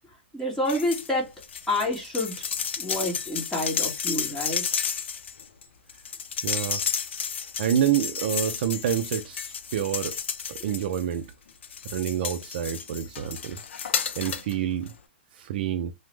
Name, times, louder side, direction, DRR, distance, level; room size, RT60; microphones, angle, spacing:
voice 1, 0.3-1.3 1.7-2.5 2.8-4.9, left 1 dB, 5° left, 1.5 m, -28 dB
sound 1, 0.6-1.1 1.4-11.2 11.6-14.5 14.9-15.0, left 7 dB, 80° left, 0.5 m, -32 dB
voice 2, 6.4-6.8 7.6-10.2 10.5-11.3 11.9-13.6 14.2-14.9 15.3-15.9, right 10 dB, 55° right, 0.4 m, -28 dB
3.0 x 2.0 x 3.2 m
hypercardioid pair, 140°, 6 cm